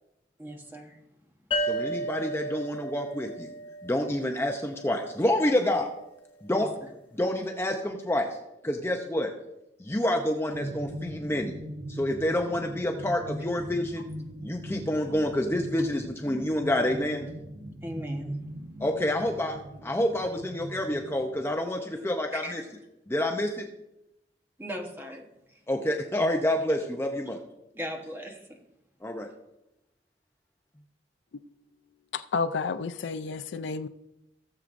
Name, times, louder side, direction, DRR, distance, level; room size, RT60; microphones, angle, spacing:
voice 1, 0.4-1.1 1.5-1.8 6.5-6.9 17.8-18.4 22.3-22.7 24.6-25.6 27.7-28.6, equal, 10° right, 1.1 m, -39 dB
sound 1, 1.5-5.0, right 1 dB, 30° left, 1.3 m, -33 dB
voice 2, 1.7-3.5 3.8-5.9 6.4-6.7 7.1-8.3 8.6-9.3 9.8-11.5 11.9-14.1 14.4-17.3 18.8-22.6 23.1-23.6 25.7-27.4 29.0-29.3, left 1 dB, 15° left, 0.6 m, -28 dB
sound 2, 10.5-21.5, right 1 dB, 70° right, 1.0 m, -40 dB
voice 3, 32.1-33.9, left 4 dB, 75° left, 0.4 m, -31 dB
16.5 x 7.3 x 2.6 m
head